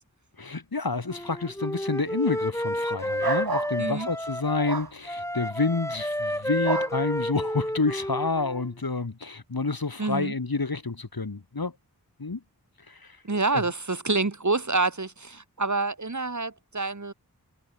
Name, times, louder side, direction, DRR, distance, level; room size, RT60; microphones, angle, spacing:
voice 1, 0.4-11.7 12.2-12.4 12.9-13.2 13.5-13.6, left 3 dB, 75° left, 4.9 m, -29 dB
Wind instrument woodwind instrument, 1.1-4.7 5.1-8.7, equal, 10° left, 3.5 m, -30 dB
sound 1, 3.2-3.7 4.6-4.9 6.6-6.9, right 4 dB, 80° right, 2.2 m, -29 dB
voice 2, 10.0-10.3 13.2-17.1, right 3 dB, 50° right, 2.6 m, -27 dB
wide cardioid pair, 45°, 36 cm